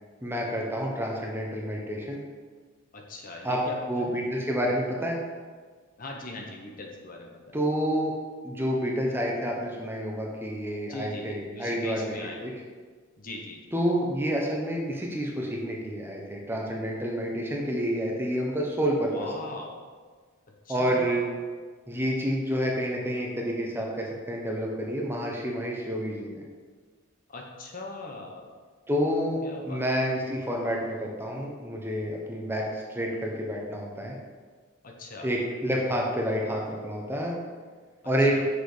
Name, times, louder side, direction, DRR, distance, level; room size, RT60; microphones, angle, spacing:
voice 1, 0.2-2.2 3.4-3.6 3.9-5.2 7.5-8.1 8.4-12.1 12.4-12.6 13.7-19.3 20.7-21.2 21.9-26.4 28.9-34.2 35.2-37.3 38.0-38.4, equal, 10° right, -1 dB, 1.1 m, -29 dB
voice 2, 2.9-4.2 6.0-7.6 10.8-12.6 13.2-13.6 19.1-19.8 20.6-21.2 27.3-28.5 29.4-29.8 34.8-35.3 38.2-38.5, left 2 dB, 40° left, 1 dB, 1.1 m, -40 dB
7.5 x 6.6 x 5.0 m, 1.5 s
head